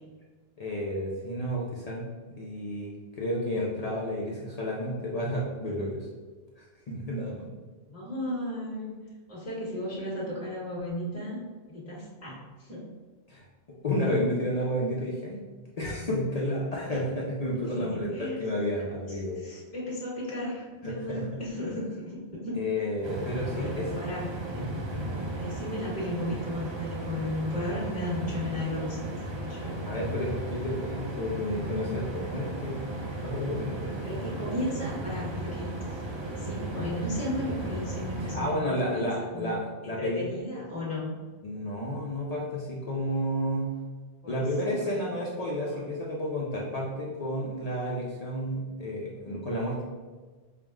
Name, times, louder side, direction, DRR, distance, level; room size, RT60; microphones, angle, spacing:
voice 1, 0.6-2.1 2.3-6.1 6.6-7.4 13.3-13.4 13.8-15.4 15.8-19.4 20.8-21.2 22.6-23.9 24.5-24.7 29.8-32.8 33.2-34.2 38.2-40.3 41.4-43.7 44.3-49.8, equal, 45° left, -5 dB, 0.6 m, -31 dB
voice 2, 7.9-8.9 9.3-11.4 11.7-12.9 17.6-18.4 19.1-22.6 23.5-24.6 25.4-29.0 29.3-29.8 34.0-39.6 39.8-41.1 44.2-44.4 44.9-45.1 45.7-45.8, left 1 dB, 15° left, -8 dB, 1.2 m, -35 dB
sound 1, 23.0-38.4, right 1 dB, 45° right, 0.4 m, -35 dB
4.7 x 2.0 x 3.5 m, 1.4 s
omnidirectional pair, 1.1 m